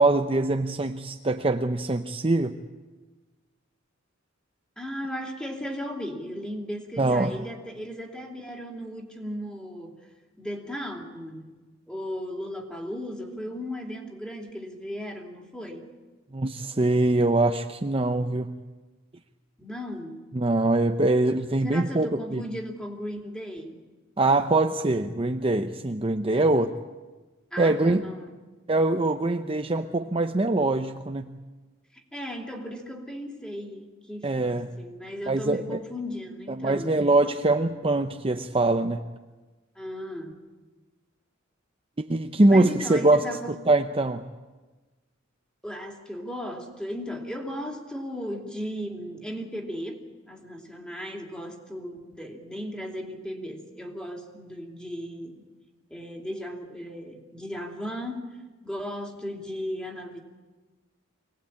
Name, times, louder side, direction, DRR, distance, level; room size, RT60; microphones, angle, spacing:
voice 1, 0.0-2.6 7.0-7.4 16.3-18.6 20.3-22.4 24.2-26.7 27.6-28.0 28.7-31.3 34.2-34.7 35.3-35.8 36.6-39.0 42.0-43.2 43.7-44.2, right 2 dB, 25° right, 5 dB, 0.7 m, -23 dB
voice 2, 4.8-10.1 10.4-11.5 11.9-15.9 19.6-20.2 21.6-23.8 26.3-26.5 27.5-28.3 31.9-37.0 39.8-40.4 42.5-43.6 45.6-55.4 55.9-58.4 58.6-60.2, equal, 5° left, 1 dB, 2.8 m, -36 dB
25.0 x 18.5 x 8.8 m, 1.2 s
head